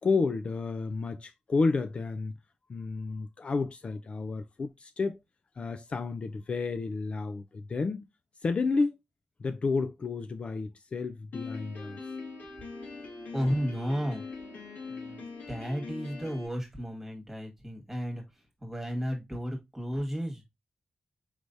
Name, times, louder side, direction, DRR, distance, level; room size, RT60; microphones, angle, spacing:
voice 1, 0.0-2.3 2.7-5.2 5.6-8.0 8.4-9.0 9.4-12.1, left 4 dB, 45° left, 0.3 m, -31 dB
Piano, 11.3-16.5, left 4 dB, 75° left, 2.1 m, -42 dB
voice 2, 13.3-14.2 14.9-18.2 18.6-20.4, equal, 10° right, 1.7 m, -33 dB
4.7 x 3.3 x 2.6 m
wide cardioid pair, 120°, 3 cm